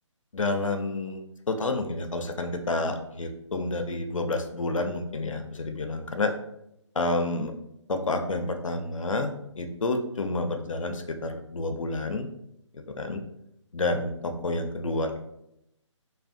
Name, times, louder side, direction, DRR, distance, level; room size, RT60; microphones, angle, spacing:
voice 1, 0.3-6.3 6.9-7.5 7.9-12.3 12.7-13.2 13.7-15.2, left 2 dB, 85° left, 6 dB, 0.4 m, -29 dB
2.5 x 2.1 x 2.4 m, 0.82 s
figure-of-eight pair, 145°, 16 cm